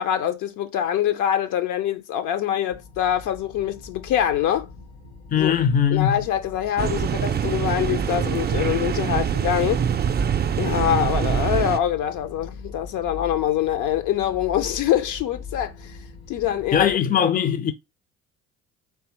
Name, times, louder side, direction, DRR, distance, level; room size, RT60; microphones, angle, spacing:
voice 1, 0.0-4.7 5.4-5.5 5.9-9.9 10.6-16.0 16.3-16.9, left 10 dB, 60° left, 0.7 m, -24 dB
sound 1, 2.7-17.0, left 4 dB, 75° left, 1.5 m, -42 dB
voice 2, 5.3-6.2 16.7-17.7, left 8 dB, 25° left, 0.5 m, -20 dB
sound 2, 6.8-11.8, right 8 dB, 30° right, 0.5 m, -24 dB
3.4 x 3.2 x 3.0 m
hypercardioid pair, 55°, 34 cm